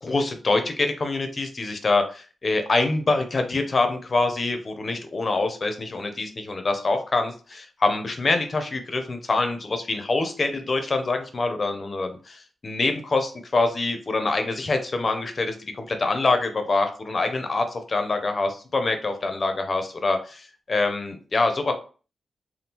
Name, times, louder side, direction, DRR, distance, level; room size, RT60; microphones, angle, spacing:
voice 1, 0.0-21.7, left 3 dB, 35° left, 6 dB, 0.5 m, -25 dB
3.5 x 2.3 x 2.8 m, 0.37 s
wide cardioid pair, 170°, 0 cm